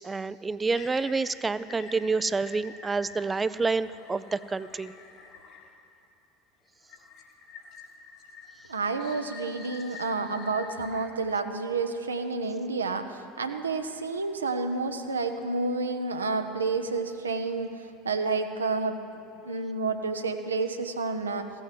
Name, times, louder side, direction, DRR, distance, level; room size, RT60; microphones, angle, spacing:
voice 1, 0.0-4.9, right 4 dB, 20° right, 16 dB, 0.3 m, -28 dB
sound 1, 0.7-6.0 6.9-11.1, left 5 dB, 45° left, 1.5 m, -47 dB
voice 2, 8.7-19.0 19.4-21.5, right 3 dB, 80° right, 7 dB, 0.7 m, -30 dB
15.5 x 6.4 x 7.6 m, 2.6 s
figure-of-eight pair, 75°, 0 cm